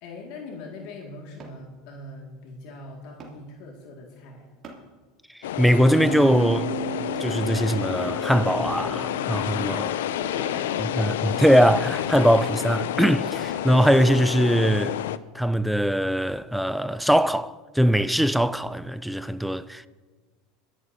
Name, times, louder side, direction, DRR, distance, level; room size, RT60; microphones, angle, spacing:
voice 1, 0.0-4.6 10.2-11.2, left 3 dB, 65° left, 2.1 m, -41 dB
sound 1, 1.4-1.6 3.2-3.4 4.6-4.9 6.5-6.7 7.8-8.0 9.0-9.2 10.4-10.6 12.4-12.7 14.6-14.9 17.1-17.3 17.9-18.0, right 4 dB, 35° right, 2.7 m, -45 dB
voice 2, 5.3-6.7 7.2-10.0 11.0-15.0 15.3-19.9, equal, ahead, 0.4 m, -21 dB
sound 2, 5.4-15.2, left 11 dB, 90° left, 0.4 m, -29 dB
Bass guitar, 5.9-12.1, right 13 dB, 20° right, 2.3 m, -37 dB
22.0 x 11.5 x 2.8 m
supercardioid pair, 125°, 0 cm